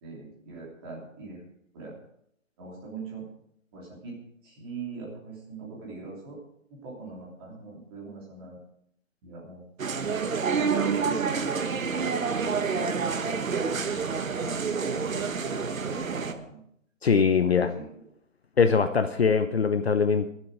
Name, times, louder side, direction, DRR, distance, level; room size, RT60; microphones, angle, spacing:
voice 1, 0.0-1.4 1.7-2.0 2.6-3.3 3.7-6.4 6.7-8.6 9.2-9.6 10.8-11.5 12.3-16.6 17.5-17.9, right 3 dB, 20° right, -4 dB, 3.0 m, -42 dB
sound 1, 9.8-16.3, right 5 dB, 75° right, 1.4 m, -28 dB
voice 2, 17.0-17.7 18.6-20.3, left 5 dB, 50° left, 9 dB, 0.8 m, -22 dB
21.5 x 7.7 x 4.9 m, 0.72 s
hypercardioid pair, 170°, 40 cm